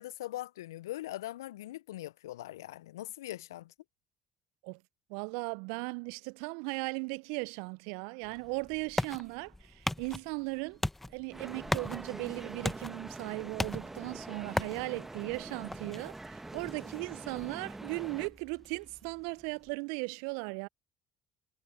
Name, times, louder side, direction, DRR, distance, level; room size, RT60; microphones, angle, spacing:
voice 1, 0.0-3.7, left 15 dB, 75° left, 0.9 m, -41 dB
voice 2, 5.1-10.8 11.1-20.7, right 33 dB, 70° right, 1.0 m, -37 dB
sound 1, 8.2-19.7, left 1 dB, 10° left, 1.6 m, -40 dB
sound 2, 11.3-18.3, right 2 dB, 15° right, 1.9 m, -44 dB
figure-of-eight pair, 55°, 2 cm